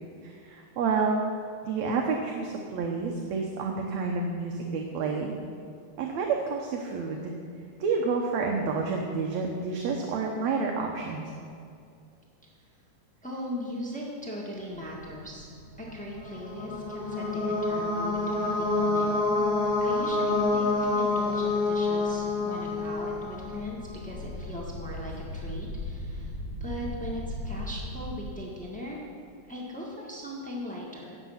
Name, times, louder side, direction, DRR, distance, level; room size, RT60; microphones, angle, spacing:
voice 1, 0.2-1.2 1.6-5.4 6.0-7.3 7.8-11.2, right 4 dB, 70° right, 1 dB, 2.1 m, -29 dB
voice 2, 13.2-15.5 15.8-19.2 19.8-29.0 29.5-31.2, equal, 10° left, -4 dB, 0.3 m, -39 dB
sound 1, 14.7-28.2, left 1 dB, 75° left, 2.9 m, -41 dB
sound 2, 16.1-23.9, left 2 dB, 55° left, 4.0 m, -27 dB
17.5 x 7.4 x 5.7 m, 2.3 s
omnidirectional pair, 3.4 m